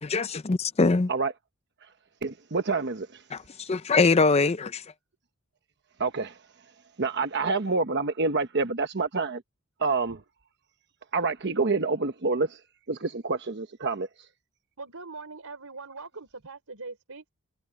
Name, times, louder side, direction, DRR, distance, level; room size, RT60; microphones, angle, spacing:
voice 1, 0.0-1.1 3.3-3.4 3.7-4.8, left 4 dB, 30° left, 0.5 m, -22 dB
voice 2, 2.2-3.1 6.0-6.3 7.0-9.4 9.8-10.2 11.1-12.5 12.9-14.1, right 3 dB, 50° right, 1.1 m, -27 dB
voice 3, 14.8-17.3, right 3 dB, 75° right, 3.9 m, -42 dB
head